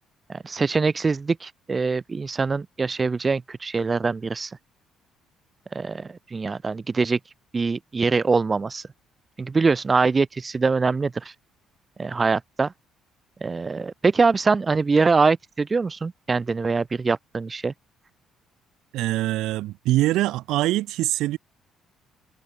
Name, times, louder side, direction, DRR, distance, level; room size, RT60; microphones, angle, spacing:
voice 1, 0.3-4.5 5.7-7.2 7.5-8.8 9.4-11.3 12.0-12.7 13.4-17.7, right 4 dB, 25° right, 0.3 m, -23 dB
voice 2, 18.9-21.4, right 16 dB, 85° right, 0.4 m, -23 dB
cardioid pair, 130°, 0 cm